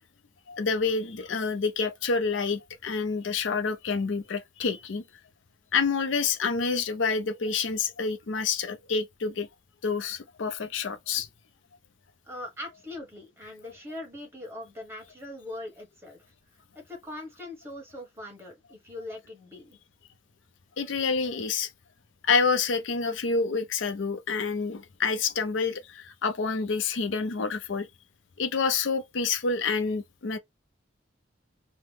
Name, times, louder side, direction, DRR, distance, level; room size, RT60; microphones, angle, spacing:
voice 1, 0.5-5.0 5.7-9.5 9.8-11.3 20.8-21.7 22.2-27.9 28.4-30.4, left 5 dB, 85° left, 0.5 m, -28 dB
voice 2, 12.2-16.2 16.7-19.8, left 1 dB, 15° right, 1.2 m, -41 dB
2.9 x 2.0 x 3.3 m
head